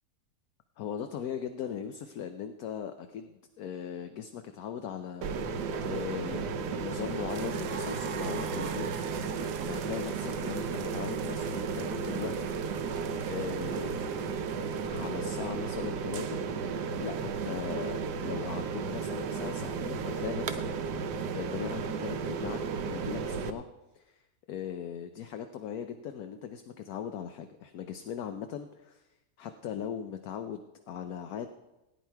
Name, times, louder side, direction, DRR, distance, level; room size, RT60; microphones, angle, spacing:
voice 1, 0.8-5.6 5.9-8.9 9.3-12.5 13.2-14.2 14.9-16.4 17.0-20.6 20.9-22.6 22.9-23.7 23.9-24.2 24.5-29.0 29.4-31.5, left 8 dB, 70° left, 7 dB, 1.1 m, -39 dB
sound 1, 5.2-23.5, right 5 dB, 80° right, 1.4 m, -34 dB
sound 2, 7.3-15.4, right 7 dB, 65° right, 1.1 m, -46 dB
18.0 x 9.5 x 4.6 m, 1.0 s
omnidirectional pair, 1.8 m